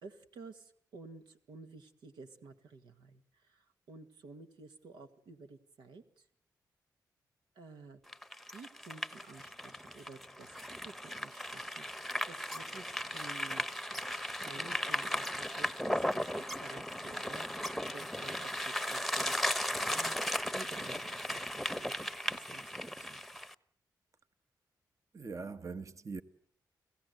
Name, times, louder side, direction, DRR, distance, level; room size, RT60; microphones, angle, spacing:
voice 1, 0.0-6.2 7.6-8.0 8.5-10.5 10.8-13.7 14.4-20.2 20.5-22.0 22.3-22.8 23.1-23.2, right 4 dB, 90° right, 2.0 m, -52 dB
sound 1, 8.1-23.5, equal, ahead, 1.0 m, -36 dB
voice 2, 25.1-26.2, right 4 dB, 45° right, 1.3 m, -42 dB
30.0 x 15.5 x 8.1 m
cardioid pair, 55°, 8 cm